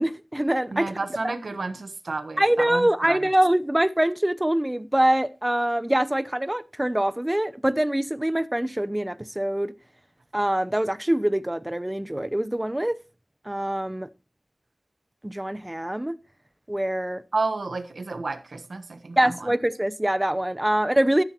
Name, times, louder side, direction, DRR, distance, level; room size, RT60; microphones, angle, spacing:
voice 1, 0.0-0.9 1.2-1.3 2.4-9.7 10.3-13.0 13.5-14.1 15.2-16.1 16.7-17.2 19.2-21.2, right 1 dB, 15° right, 0.8 m, -24 dB
voice 2, 0.7-3.3 17.3-19.3, right 3 dB, 90° right, 1.2 m, -31 dB
13.0 x 13.0 x 3.0 m
wide cardioid pair, 65°, 0 cm